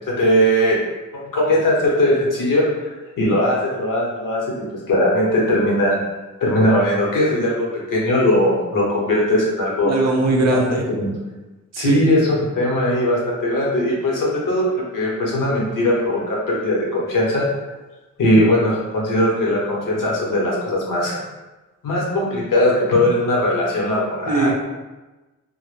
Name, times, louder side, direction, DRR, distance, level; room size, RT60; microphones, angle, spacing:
voice 1, 0.2-0.8 1.3-2.7 3.2-4.4 4.9-6.0 6.4-10.1 10.5-11.1 11.8-17.4 18.2-21.1 21.8-24.5, left 1 dB, 80° left, -4 dB, 0.8 m, -19 dB
voice 2, 9.8-10.8 11.7-12.0 24.3-24.5, right 2 dB, 55° right, 0 dB, 0.5 m, -19 dB
2.1 x 2.0 x 3.1 m, 1.1 s
wide cardioid pair, 155°, 32 cm